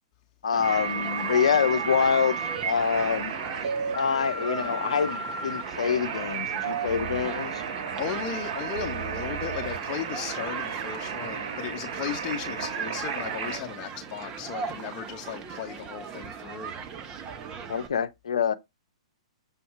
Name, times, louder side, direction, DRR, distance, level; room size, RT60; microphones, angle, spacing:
voice 1, 0.4-2.4 2.6-3.3 3.9-7.6 17.7-18.5, left 7 dB, 70° left, 0.7 m, -26 dB
Human group actions, 0.5-17.9, right 6 dB, 25° right, 1.0 m, -39 dB
sound 1, 0.6-13.6, right 6 dB, 55° right, 2.9 m, -33 dB
voice 2, 8.0-16.7, left 8 dB, 35° left, 1.1 m, -36 dB
7.3 x 2.7 x 4.7 m
figure-of-eight pair, 110°, 3 cm